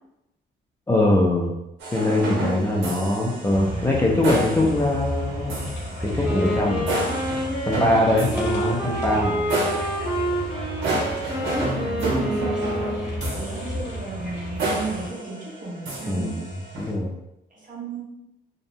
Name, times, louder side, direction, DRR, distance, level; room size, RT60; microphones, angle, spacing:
voice 1, 0.9-1.5 1.9-5.7 6.0-6.9 7.7-9.4 16.1-17.1, left 1 dB, 15° left, -4 dB, 0.4 m, -22 dB
sound 1, 1.8-16.9, right 2 dB, 80° right, 0.8 m, -31 dB
sound 2, 3.5-15.1, equal, 60° left, 0.8 m, -33 dB
Wind instrument woodwind instrument, 6.1-13.3, equal, 5° right, 1.0 m, -28 dB
voice 2, 11.4-12.9 13.2-16.4 17.5-18.0, right 3 dB, 40° right, -5 dB, 1.1 m, -33 dB
2.7 x 2.0 x 2.6 m, 0.87 s
cardioid pair, 90°, 20 cm